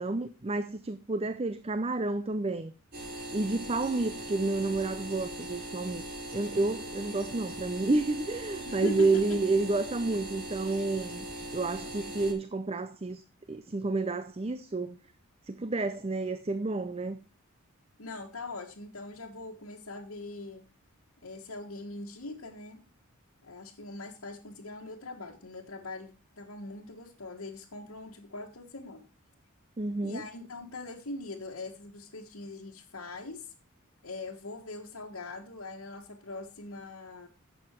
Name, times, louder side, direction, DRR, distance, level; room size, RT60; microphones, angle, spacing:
voice 1, 0.0-2.7 3.3-6.0 6.3-11.3 11.5-13.2 13.5-15.0 15.5-17.2 29.8-30.2, right 3 dB, 30° right, 0.6 m, -30 dB
sound 1, 2.9-12.3, right 1 dB, 45° right, 6.1 m, -40 dB
voice 2, 8.6-9.4 18.0-20.6 21.2-22.8 23.4-29.0 30.0-33.5 34.0-37.3, left 2 dB, 80° left, 1.6 m, -41 dB
11.5 x 7.9 x 4.5 m
head